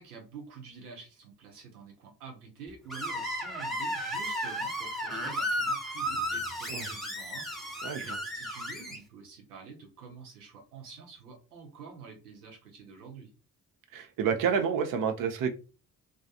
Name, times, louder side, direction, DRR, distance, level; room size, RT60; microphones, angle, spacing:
voice 1, 0.0-13.3, right 5 dB, 85° right, 0.7 m, -48 dB
Screech, 2.9-9.0, equal, ahead, 0.7 m, -34 dB
voice 2, 13.9-15.5, right 7 dB, 50° right, 0.6 m, -29 dB
2.3 x 2.2 x 2.7 m
figure-of-eight pair, 40°, 44 cm